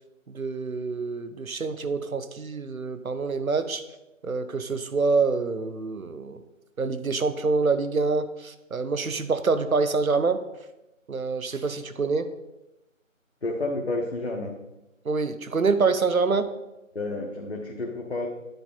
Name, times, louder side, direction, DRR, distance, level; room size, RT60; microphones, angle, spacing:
voice 1, 0.3-3.8 4.2-6.4 6.8-10.4 11.1-12.3 15.0-16.5, right 4 dB, 90° right, 11 dB, 0.9 m, -26 dB
voice 2, 13.4-14.5 16.9-18.3, left 2 dB, 50° left, -1 dB, 1.0 m, -30 dB
9.4 x 4.3 x 5.4 m, 0.96 s
figure-of-eight pair, 170°, 41 cm